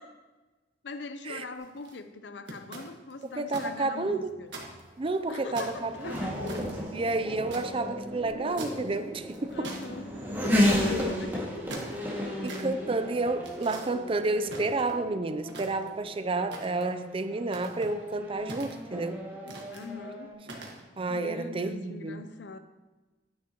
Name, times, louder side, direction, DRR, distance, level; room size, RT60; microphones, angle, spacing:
voice 1, 0.8-4.5 5.3-6.6 9.5-11.6 12.1-12.5 19.4-20.3 21.1-22.6, left 3 dB, 70° left, 10 dB, 0.6 m, -41 dB
sound 1, 1.5-1.9 2.5-3.7 4.0-4.1 4.5-5.2 5.5-7.6 8.6-9.0 9.3-9.9 10.5-10.8 11.4-12.6 13.4-13.9 14.4-15.1 15.4-16.0 16.5-16.9 17.5-17.9 18.5-19.0 19.5-19.8 20.4-20.8, right 2 dB, 70° right, 1.6 m, -42 dB
voice 2, 3.4-4.3 5.0-6.1 6.9-9.7 10.9-11.0 12.4-19.3 21.0-22.2, right 3 dB, 30° right, 10 dB, 0.4 m, -30 dB
Race car auto racing / Accelerating revving vroom, 4.1-20.3, left 1 dB, 10° right, 2.0 m, -34 dB
9.8 x 9.7 x 3.0 m, 1.2 s
head